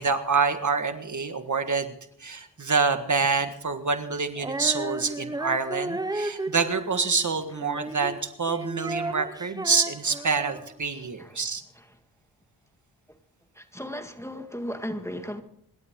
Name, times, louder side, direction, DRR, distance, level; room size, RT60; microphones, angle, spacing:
voice 1, 0.0-1.9 2.2-11.6, right 4 dB, 45° right, 8 dB, 1.6 m, -26 dB
Female singing, 4.4-10.8, right 2 dB, 10° right, 0.5 m, -34 dB
voice 2, 13.6-15.4, equal, 5° left, 6 dB, 1.8 m, -35 dB
26.5 x 12.0 x 3.7 m, 0.71 s
cardioid pair, 75°, 42 cm